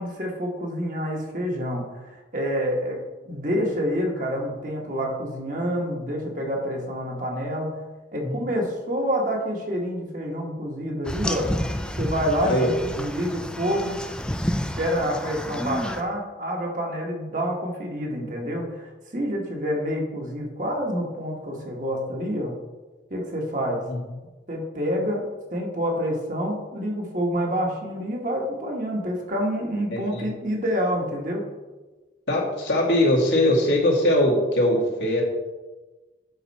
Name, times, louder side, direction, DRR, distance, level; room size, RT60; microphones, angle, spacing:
voice 1, 0.0-3.0 3.3-7.7 8.1-11.5 12.0-12.7 13.0-14.0 14.6-22.5 23.1-23.8 24.5-31.4, equal, 45° right, 0 dB, 1.4 m, -27 dB
sound 1, 11.1-16.0, equal, 5° left, 0.4 m, -30 dB
voice 2, 29.9-30.2 32.3-35.2, left 1 dB, 85° left, -2 dB, 2.0 m, -21 dB
8.0 x 5.9 x 4.2 m, 1.2 s
head